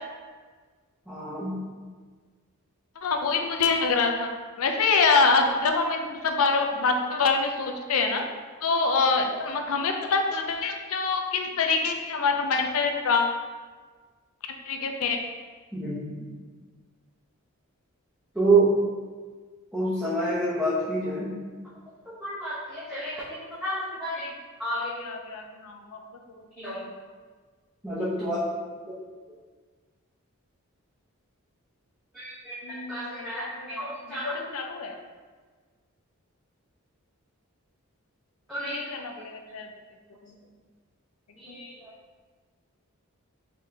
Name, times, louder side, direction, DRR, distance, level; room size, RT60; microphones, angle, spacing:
voice 1, 1.1-1.6 15.7-16.3 18.3-18.7 19.7-21.3 22.2-24.2 24.6-24.9 26.6-26.8 27.8-28.4 32.1-32.6 32.9-34.4 38.5-38.8 41.4-41.9, right 2 dB, 5° right, -12 dB, 0.9 m, -28 dB
voice 2, 3.0-4.3 4.6-8.2 8.6-13.4 14.4-15.2 23.2-23.7 24.1-24.3 24.7-26.0 26.6-26.9 32.6-34.9 38.6-39.7 40.3-40.4 41.5-41.6, left 4 dB, 70° left, 4 dB, 0.5 m, -26 dB
5.2 x 3.6 x 2.8 m, 1.5 s
head